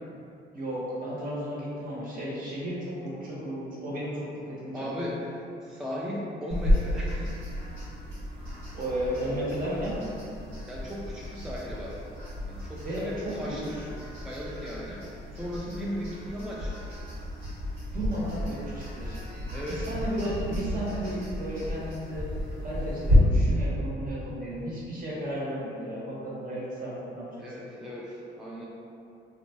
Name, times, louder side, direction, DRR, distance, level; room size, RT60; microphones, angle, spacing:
voice 1, 0.5-4.9 8.7-10.0 12.8-13.8 17.9-27.4, equal, 45° right, -7 dB, 0.9 m, -34 dB
voice 2, 4.7-7.3 10.7-12.0 12.5-13.9 14.2-16.8 19.5-19.9 27.4-28.7, equal, 5° right, -6 dB, 0.3 m, -36 dB
sound 1, 6.5-23.2, equal, 85° right, 1.2 m, -33 dB
2.7 x 2.2 x 2.8 m, 2.6 s
cardioid pair, 90°, 20 cm